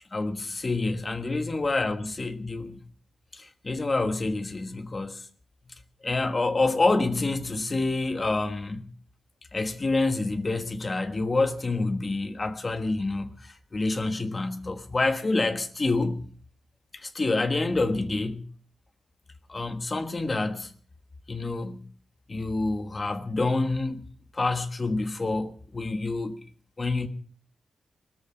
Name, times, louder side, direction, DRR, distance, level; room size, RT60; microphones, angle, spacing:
voice 1, 0.1-2.8 3.3-5.3 6.0-8.9 9.5-16.2 16.9-18.4 19.5-20.7 21.3-21.9 22.3-24.0 24.3-26.4 26.8-27.1, left 3 dB, 25° left, 1.3 m, -27 dB
19.5 x 13.5 x 4.6 m
wide cardioid pair, 155°, 0 cm